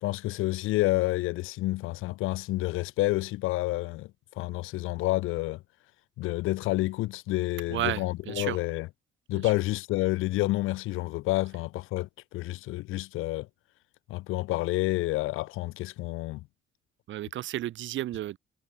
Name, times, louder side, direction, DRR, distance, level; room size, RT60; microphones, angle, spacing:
voice 1, 0.0-4.1 4.4-5.6 6.2-8.9 9.3-13.5 14.1-16.4, left 18 dB, 80° left, 0.5 m, -29 dB
voice 2, 7.7-8.6 9.3-9.6 17.1-18.4, right 13 dB, 65° right, 2.2 m, -33 dB
cardioid pair, 155°, 21 cm